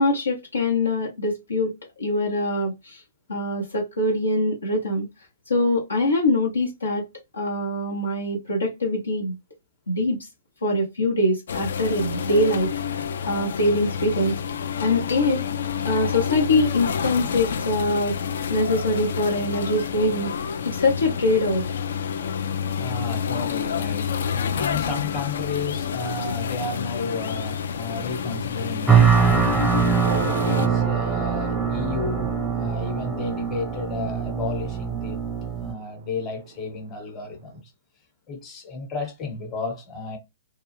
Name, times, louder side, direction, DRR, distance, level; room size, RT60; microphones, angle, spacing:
voice 1, 0.0-1.7 2.0-3.0 3.3-5.1 5.5-7.1 7.3-9.4 9.9-10.2 10.6-14.3 14.8-15.4 15.8-18.2 18.5-20.3 20.6-21.7, left 1 dB, 85° left, 0.8 m, -23 dB
sound 1, 11.5-30.7, left 7 dB, 65° left, 0.3 m, -29 dB
voice 2, 22.8-24.2 24.5-29.9 30.3-35.2 35.6-37.6 38.3-40.2, left 3 dB, 25° left, 1.0 m, -32 dB
sound 2, 28.9-35.7, right 6 dB, 5° right, 0.5 m, -22 dB
sound 3, 30.0-36.8, right 9 dB, 55° right, 0.3 m, -35 dB
2.3 x 2.3 x 3.1 m
figure-of-eight pair, 120°, 0 cm